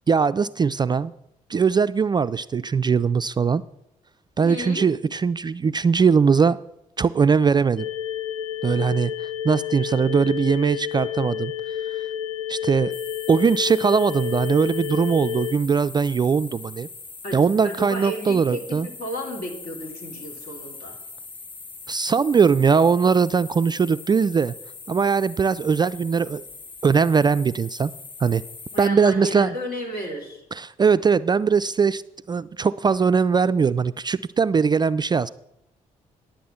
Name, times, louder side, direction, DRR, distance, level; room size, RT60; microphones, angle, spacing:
voice 1, 0.1-1.1 1.5-3.6 4.4-6.6 7.0-7.9 8.6-9.1 9.4-12.1 12.5-13.0 13.3-16.9 17.3-18.9 21.9-24.5 24.9-26.4 26.8-27.9 28.2-28.4 28.8-29.5 30.5-32.0 32.3-35.3, right 5 dB, 25° right, 14 dB, 0.3 m, -20 dB
voice 2, 4.4-4.9 17.2-21.0 28.7-30.4, equal, 60° left, 1 dB, 3.0 m, -33 dB
sound 1, 7.8-15.5, left 10 dB, 80° left, 0.4 m, -30 dB
sound 2, 12.9-28.9, left 4 dB, 30° left, 0.8 m, -41 dB
10.0 x 7.3 x 7.1 m, 0.82 s
figure-of-eight pair, 40°, 18 cm